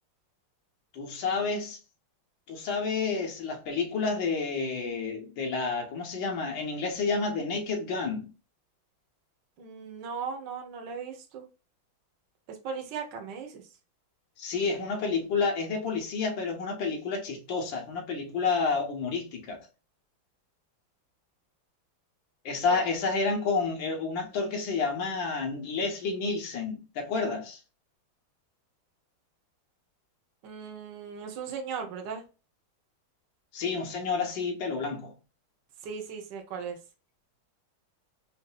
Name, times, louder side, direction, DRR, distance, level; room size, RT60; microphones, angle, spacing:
voice 1, 0.9-1.8 2.5-8.3 14.4-19.7 22.5-27.6 33.5-35.1, left 4 dB, 65° left, 1.8 m, -30 dB
voice 2, 9.6-11.4 12.5-13.6 22.7-22.8 30.4-32.2 35.8-36.8, right 6 dB, 65° right, 1.5 m, -37 dB
5.3 x 2.6 x 2.3 m
omnidirectional pair, 2.2 m